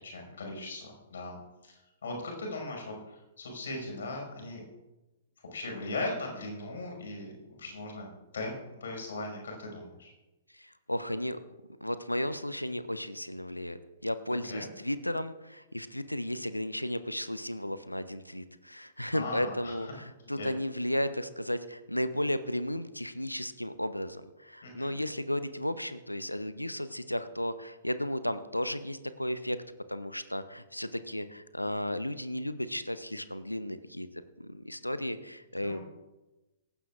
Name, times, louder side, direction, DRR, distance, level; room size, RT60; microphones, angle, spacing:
voice 1, 0.0-1.4 1.6-4.6 5.5-7.3 7.6-8.1 8.3-10.1 14.3-14.7 19.1-19.9 20.4-20.5 24.6-24.9 35.6-35.8, left 2 dB, 60° left, 0 dB, 5.6 m, -38 dB
voice 2, 10.5-11.4 11.8-29.6 29.9-34.1 34.4-35.8, left 1 dB, 90° left, 13 dB, 0.7 m, -34 dB
18.5 x 15.5 x 2.5 m, 1.0 s
figure-of-eight pair, 110°, 0 cm